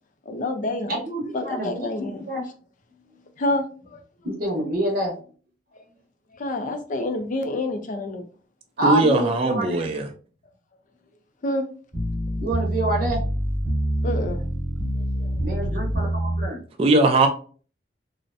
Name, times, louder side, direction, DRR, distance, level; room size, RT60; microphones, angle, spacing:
voice 1, 0.3-1.0 1.3-2.2 3.4-3.6 3.9-4.0 5.7-5.8 6.3-8.3 11.4-11.7 14.0-14.4 14.9-15.3, left 2 dB, 45° left, 0.4 m, -28 dB
voice 2, 0.9-2.4 4.2-5.2 8.8-9.9 12.4-13.3 15.4-16.6, right 1 dB, 55° right, 0.7 m, -27 dB
voice 3, 8.8-10.1 16.8-17.3, right 2 dB, 35° right, 0.3 m, -19 dB
sound 1, 11.9-16.5, right 1 dB, 5° right, 1.0 m, -26 dB
2.5 x 2.0 x 2.5 m
head